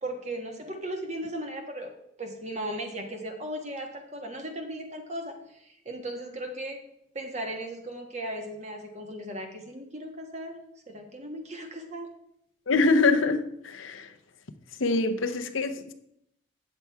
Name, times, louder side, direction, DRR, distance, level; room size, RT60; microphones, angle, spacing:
voice 1, 0.0-1.9 2.2-6.8 7.1-10.5 10.9-12.1, right 1 dB, 35° right, 1.3 m, -37 dB
voice 2, 12.7-14.1 14.8-15.9, left 3 dB, 90° left, 0.7 m, -24 dB
8.5 x 6.8 x 4.6 m
head